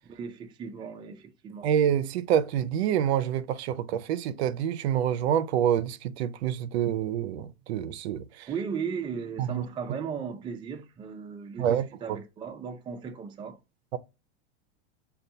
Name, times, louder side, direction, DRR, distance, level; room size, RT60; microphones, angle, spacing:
voice 1, 0.1-1.7 8.5-13.6, right 6 dB, 15° right, 0.4 m, -36 dB
voice 2, 1.6-8.2 9.4-9.6 11.6-11.8 13.9-14.0, right 9 dB, 75° right, 0.5 m, -27 dB
5.2 x 2.3 x 2.6 m
hypercardioid pair, 120°, 32 cm